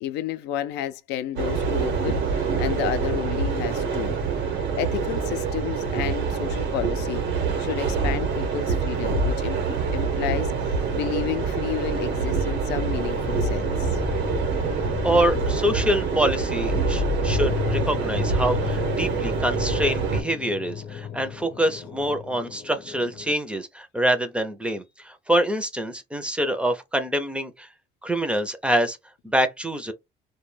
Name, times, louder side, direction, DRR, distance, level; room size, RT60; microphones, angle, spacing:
voice 1, 0.0-4.1 4.5-7.2 7.6-10.5 10.9-13.9, left 11 dB, 85° left, 0.4 m, -31 dB
sound 1, 1.4-20.2, right 5 dB, 75° right, 0.9 m, -26 dB
sound 2, 12.9-23.3, left 6 dB, 50° left, 0.7 m, -32 dB
voice 2, 15.0-27.7 28.0-29.0 29.2-29.9, right 1 dB, 5° right, 0.5 m, -25 dB
2.2 x 2.1 x 3.1 m
cardioid pair, 110°, 17 cm